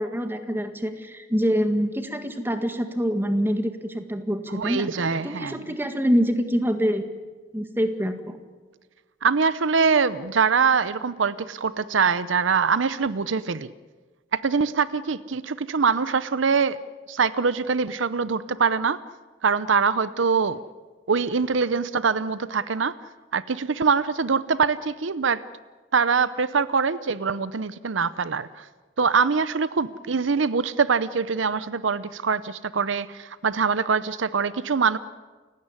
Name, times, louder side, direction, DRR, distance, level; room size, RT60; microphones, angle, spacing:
voice 1, 0.0-4.9 5.2-7.0 7.5-8.4, equal, 10° right, 7 dB, 1.8 m, -25 dB
voice 2, 4.5-5.6 9.2-13.7 14.3-16.8 17.1-19.0 19.4-20.6 21.1-22.9 23.3-25.4 25.9-28.7 29.0-35.0, right 5 dB, 75° right, 16 dB, 0.7 m, -23 dB
29.0 x 16.5 x 9.7 m, 1.4 s
head